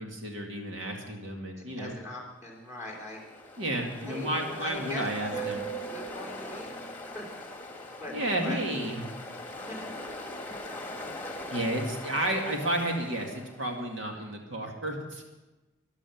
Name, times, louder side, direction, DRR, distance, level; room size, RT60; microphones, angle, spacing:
voice 1, 0.0-2.0 3.6-5.6 8.1-9.0 11.5-15.2, right 1 dB, 65° right, 2 dB, 2.4 m, -32 dB
voice 2, 1.8-3.2 4.1-5.5 5.8-6.7 7.1-7.2 8.0-9.0 9.6-9.9, left 1 dB, 15° right, -2 dB, 3.1 m, -41 dB
Ocean, 2.7-13.8, equal, 10° left, 1.8 m, -40 dB
14.0 x 11.5 x 7.3 m, 1.1 s
head